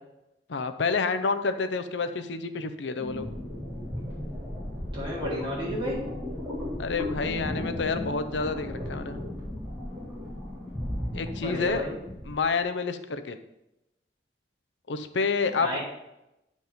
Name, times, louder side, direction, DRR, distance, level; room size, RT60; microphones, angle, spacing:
voice 1, 0.5-3.3 6.8-9.2 11.1-11.8 12.3-13.4 14.9-15.8, left 4 dB, 90° left, 9 dB, 0.6 m, -29 dB
sound 1, 3.0-12.4, left 1 dB, 10° right, 3.8 m, -35 dB
voice 2, 4.9-6.0 11.4-12.0 15.6-15.8, equal, 30° right, -7 dB, 3.5 m, -32 dB
9.4 x 5.3 x 5.0 m, 0.89 s
head